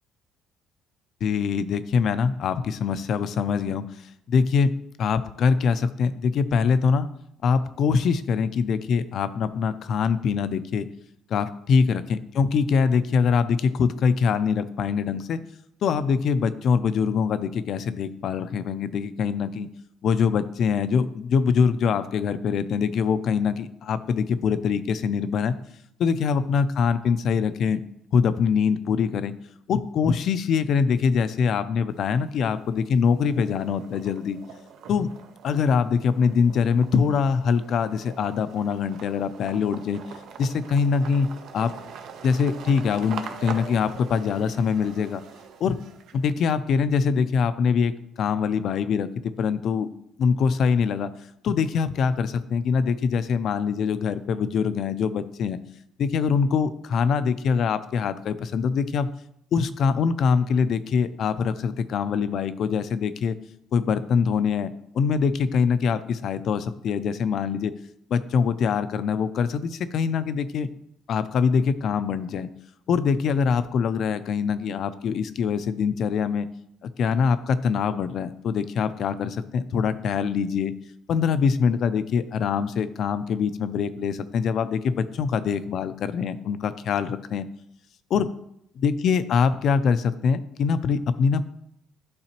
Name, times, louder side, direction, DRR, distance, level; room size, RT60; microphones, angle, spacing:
voice 1, 1.2-3.8 4.3-4.7 5.0-7.1 7.4-10.9 11.3-15.4 15.8-19.7 20.0-25.6 26.0-27.8 28.1-29.3 29.7-34.4 34.9-35.1 35.4-40.0 40.4-41.7 42.2-45.2 45.6-45.8 46.1-49.9 50.2-51.1 51.4-55.6 56.0-59.1 59.5-63.4 63.7-67.7 68.1-70.7 71.1-72.5 72.9-76.5 76.8-80.7 81.1-87.5 88.1-88.3 88.8-91.4, left 6 dB, 55° left, 12 dB, 0.4 m, -23 dB
sound 1, 31.9-32.5 32.9-46.5, right 7 dB, 65° right, 0.6 m, -43 dB
11.5 x 3.9 x 2.9 m, 0.76 s
cardioid pair, 135°, 0 cm